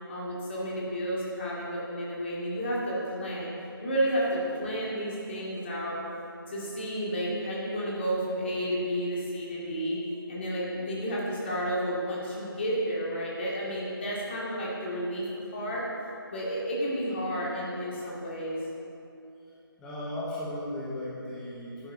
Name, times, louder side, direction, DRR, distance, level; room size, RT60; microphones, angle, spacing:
voice 1, 0.1-3.5 3.8-6.0 6.5-10.0 10.3-15.3 15.5-15.8 16.3-18.6, equal, 30° left, -6 dB, 2.3 m, -31 dB
voice 2, 19.8-21.9, left 1 dB, 5° left, -8 dB, 1.2 m, -36 dB
10.5 x 8.1 x 3.9 m, 2.7 s
figure-of-eight pair, 160°, 12 cm